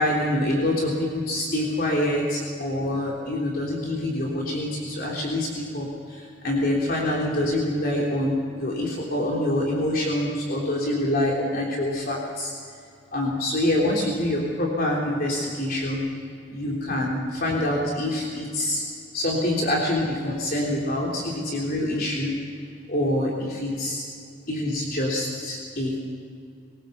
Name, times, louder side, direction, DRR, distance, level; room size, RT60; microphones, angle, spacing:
voice 1, 0.0-12.5 13.1-16.0 16.5-18.8 19.1-22.3 22.9-24.0 24.5-26.0, left 1 dB, 50° left, -3 dB, 3.5 m, -26 dB
21.5 x 19.0 x 7.0 m, 2.3 s
head